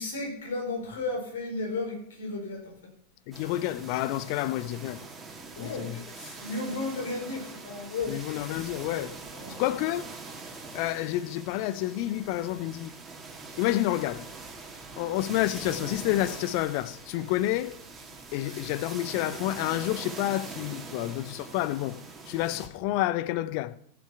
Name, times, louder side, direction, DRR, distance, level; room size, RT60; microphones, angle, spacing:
voice 1, 0.0-2.9 5.6-8.2 9.3-9.6 18.3-18.6, left 3 dB, 65° left, 4.6 m, -34 dB
voice 2, 3.3-5.0 5.6-6.0 8.1-9.1 9.6-10.1 10.7-12.9 13.6-14.3 15.0-17.8 18.3-22.0 22.3-23.8, left 15 dB, 45° left, 0.6 m, -29 dB
sound 1, 3.3-22.7, right 3 dB, 15° right, 2.3 m, -43 dB
14.5 x 7.5 x 5.8 m
figure-of-eight pair, 90°, 0 cm